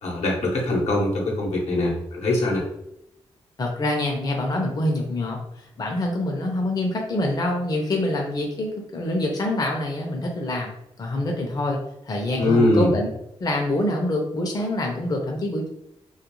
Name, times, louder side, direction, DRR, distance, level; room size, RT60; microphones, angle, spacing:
voice 1, 0.0-2.6 12.4-12.9, left 1 dB, 80° left, -2 dB, 0.8 m, -22 dB
voice 2, 3.6-5.4 5.8-10.7 11.0-11.8 12.0-13.1 13.4-15.7, left 1 dB, 35° left, 0 dB, 0.5 m, -25 dB
2.3 x 2.2 x 3.0 m, 0.80 s
cardioid pair, 75°, 11 cm